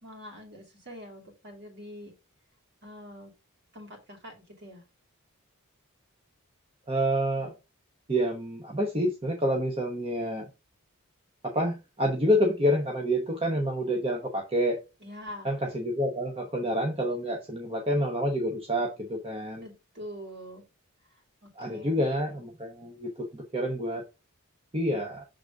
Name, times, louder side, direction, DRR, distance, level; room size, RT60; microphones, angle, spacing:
voice 1, 0.0-2.1 2.8-3.3 3.7-4.8 15.0-15.5 19.6-20.6 21.1-22.0, equal, 50° right, 2.7 m, -45 dB
voice 2, 6.9-7.6 8.1-10.5 11.4-14.8 15.4-19.6 21.6-24.0 24.7-25.3, equal, 25° right, 1.0 m, -28 dB
6.5 x 3.9 x 4.8 m
head